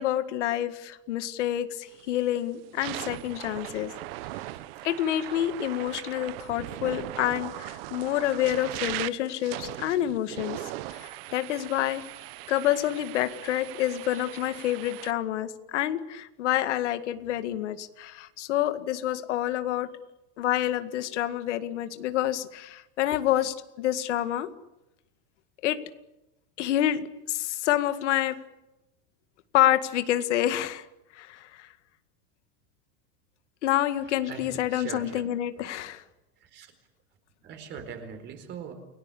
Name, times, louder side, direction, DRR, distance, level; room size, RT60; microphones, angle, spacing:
voice 1, 0.0-3.9 4.8-10.6 10.9-12.0 12.5-19.9 20.4-24.5 25.6-25.8 26.6-28.4 29.5-30.9 31.1-31.7 33.6-36.0, left 12 dB, 85° left, 9 dB, 2.0 m, -28 dB
sound 1, 1.9-2.2 2.6-15.1, right 17 dB, 55° right, 1.1 m, -39 dB
voice 2, 34.1-35.2 35.6-35.7 36.4-36.7 37.4-38.7, right 7 dB, 30° right, 7 dB, 4.4 m, -41 dB
29.5 x 18.5 x 8.5 m, 0.95 s
supercardioid pair, 160°, 35 cm